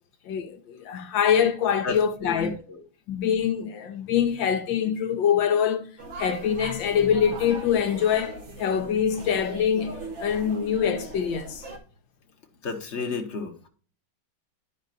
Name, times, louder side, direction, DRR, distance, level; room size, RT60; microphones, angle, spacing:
voice 1, 0.3-2.6 3.1-5.9 6.2-11.7, left 8 dB, 75° left, 1.4 m, -24 dB
voice 2, 1.8-2.8 12.6-13.7, left 4 dB, 40° left, 1.1 m, -32 dB
sound 1, 6.0-11.8, right 2 dB, 40° right, 1.3 m, -39 dB
10.5 x 5.4 x 2.5 m
omnidirectional pair, 2.2 m